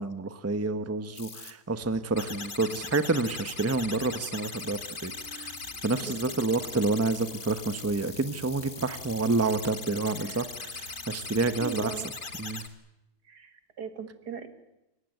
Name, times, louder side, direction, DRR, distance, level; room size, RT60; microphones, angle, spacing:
voice 1, 0.0-5.5 5.8-11.9 12.4-12.6, right 3 dB, 10° right, 11 dB, 0.9 m, -29 dB
sound 1, 1.1-1.5 2.2-12.7, left 4 dB, 35° left, 1.6 m, -40 dB
sound 2, 1.7-12.4, right 1 dB, 60° right, 4.0 m, -53 dB
voice 2, 6.0-6.4 10.2-10.5 11.6-12.1 13.2-14.5, right 6 dB, 80° right, 9 dB, 2.5 m, -39 dB
28.0 x 16.5 x 9.2 m, 0.91 s
omnidirectional pair, 1.7 m